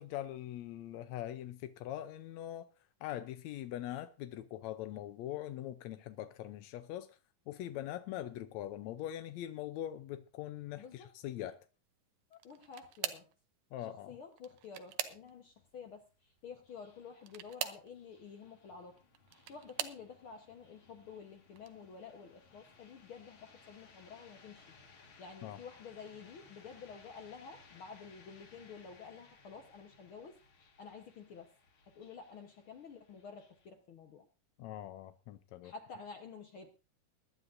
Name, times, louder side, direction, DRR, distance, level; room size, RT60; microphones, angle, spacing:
voice 1, 0.0-2.7 3.0-7.2 7.5-11.6 13.7-14.2 25.4-25.6 34.6-35.7, left 12 dB, 80° left, 1.6 m, -42 dB
voice 2, 10.8-11.1 12.3-13.3 14.1-19.0 19.5-24.7 25.2-30.4 30.8-31.5 31.9-34.2 35.6-36.7, left 5 dB, 65° left, 1.3 m, -50 dB
sound 1, 12.3-13.4 14.3-15.6 17.2-17.9 19.0-20.1 20.8-21.2 21.6-21.7 23.0-23.1, right 11 dB, 75° right, 2.5 m, -42 dB
sound 2, 14.9-33.7, left 4 dB, 45° left, 2.2 m, -63 dB
22.0 x 11.0 x 2.7 m
omnidirectional pair, 4.0 m